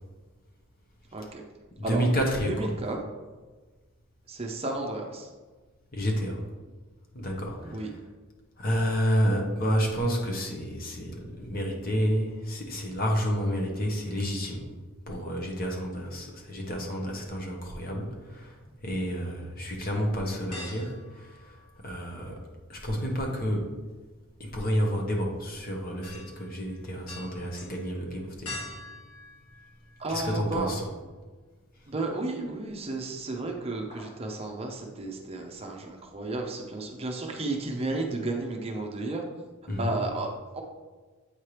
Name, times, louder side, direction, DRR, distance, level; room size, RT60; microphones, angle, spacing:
voice 1, 1.1-1.4 1.8-2.0 2.5-3.0 4.3-5.3 7.6-7.9 30.0-30.7 31.9-39.2 39.8-40.6, right 2 dB, 25° right, 2 dB, 0.6 m, -33 dB
voice 2, 1.9-2.7 5.9-6.4 7.1-7.9 8.6-14.6 15.1-21.6 21.8-22.4 22.7-23.8 24.4-28.7 30.1-30.8 39.7-40.0, equal, 40° left, 0 dB, 1.1 m, -30 dB
sound 1, 20.5-22.2 22.5-30.4 30.8-30.9 32.4-33.0 33.2-33.5 33.7-34.3 34.6-34.7, left 2 dB, 90° left, 1.7 m, -46 dB
8.1 x 4.5 x 3.3 m, 1.3 s
head